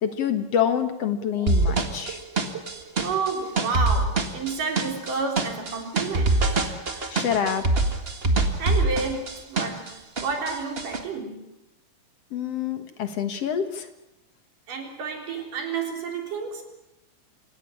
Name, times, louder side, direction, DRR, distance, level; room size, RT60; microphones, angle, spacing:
voice 1, 0.0-2.2 7.1-7.8 12.3-13.9, left 8 dB, 55° left, 9 dB, 2.1 m, -26 dB
sound 1, 1.5-9.9 10.2-11.0, right 2 dB, 25° right, 1.4 m, -24 dB
voice 2, 3.0-6.6 8.6-11.5 14.7-16.6, right 4 dB, 85° right, 3 dB, 5.5 m, -30 dB
27.0 x 16.0 x 9.9 m, 0.89 s
omnidirectional pair, 3.7 m